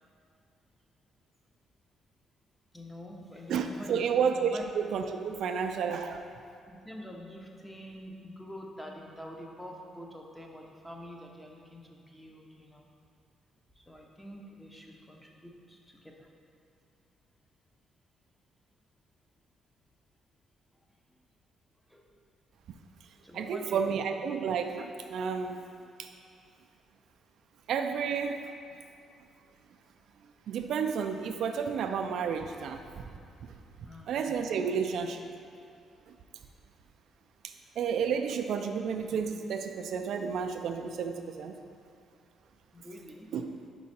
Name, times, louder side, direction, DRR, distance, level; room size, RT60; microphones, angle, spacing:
voice 1, 2.7-4.6 6.7-12.8 13.8-16.3 21.9-22.1 23.2-24.0 33.8-34.3 42.7-43.3, equal, 5° left, 0 dB, 0.8 m, -46 dB
voice 2, 3.5-6.3 23.3-25.6 26.0-26.1 27.7-28.5 30.5-33.0 34.1-35.2 37.8-41.6 43.3-43.5, right 6 dB, 75° right, 6 dB, 0.3 m, -31 dB
5.3 x 4.6 x 4.2 m, 2.4 s
cardioid pair, 90°, 0 cm